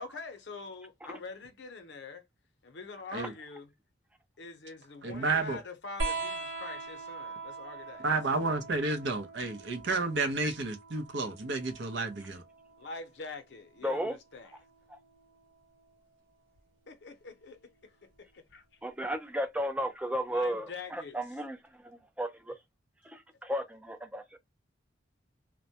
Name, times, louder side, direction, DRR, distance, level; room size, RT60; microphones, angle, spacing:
voice 1, 0.0-2.2 2.6-3.7 4.4-8.0 12.8-14.5 16.9-18.6 20.3-21.2, left 3 dB, 60° left, 0.6 m, -45 dB
voice 2, 5.0-5.6 8.0-12.4, right 3 dB, 70° right, 0.6 m, -31 dB
sound 1, 6.0-13.1 14.4-15.3 16.6-16.7, right 3 dB, 85° right, 0.9 m, -41 dB
voice 3, 13.8-14.2 14.9-15.0 18.8-21.6 21.8-22.5 23.1-24.2, equal, 5° right, 0.4 m, -34 dB
2.1 x 2.1 x 2.7 m
head